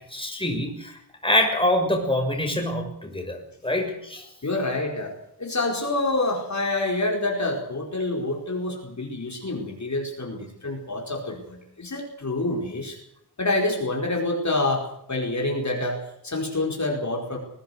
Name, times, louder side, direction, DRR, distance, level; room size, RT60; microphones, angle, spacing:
voice 1, 0.1-0.9 1.2-3.4 3.6-4.2, left 1 dB, 15° left, 3 dB, 6.4 m, -25 dB
voice 2, 4.4-5.1 5.4-13.0 13.4-17.4, left 2 dB, 45° left, 0 dB, 5.0 m, -27 dB
22.0 x 18.0 x 8.1 m, 0.75 s
wide cardioid pair, 110°, 40 cm